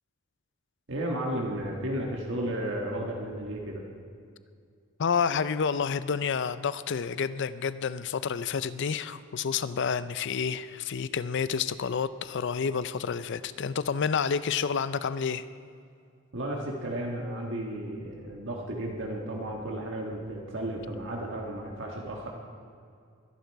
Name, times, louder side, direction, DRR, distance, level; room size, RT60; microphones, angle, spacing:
voice 1, 0.9-3.8 16.3-22.3, right 1 dB, 55° right, -1 dB, 1.5 m, -33 dB
voice 2, 5.0-15.4, left 6 dB, 55° left, 15 dB, 0.5 m, -29 dB
22.5 x 10.5 x 4.7 m, 2.3 s
head